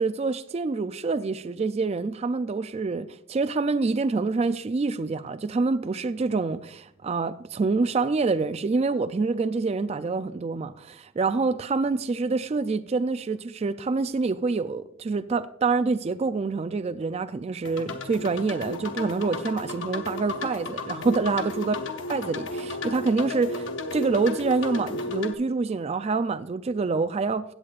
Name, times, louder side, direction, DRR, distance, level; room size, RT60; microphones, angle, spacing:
voice 1, 0.0-21.7 22.1-23.7 23.9-27.4, right 4 dB, 30° right, 0.3 m, -26 dB
sound 1, 17.6-25.3, left 2 dB, 60° left, 0.8 m, -33 dB
16.0 x 8.4 x 2.4 m
head